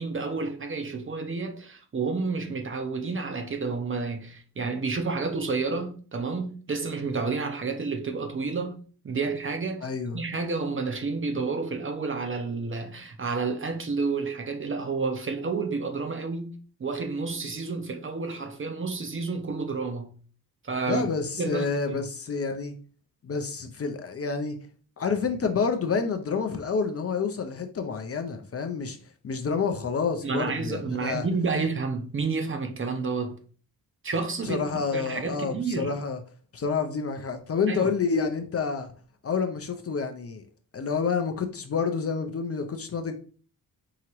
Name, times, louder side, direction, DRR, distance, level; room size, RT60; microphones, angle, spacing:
voice 1, 0.0-8.8 9.0-9.9 10.1-20.1 20.6-21.0 21.4-22.0 30.2-33.4 34.0-34.6 34.9-35.9 37.7-37.9, right 4 dB, 35° right, 0.5 m, -30 dB
voice 2, 9.8-10.2 20.9-22.7 23.2-24.6 25.0-29.0 29.2-31.3 34.4-36.2 36.5-38.9 39.2-40.4 40.7-43.2, left 5 dB, 40° left, 0.4 m, -28 dB
4.7 x 2.9 x 2.9 m
wide cardioid pair, 160°, 38 cm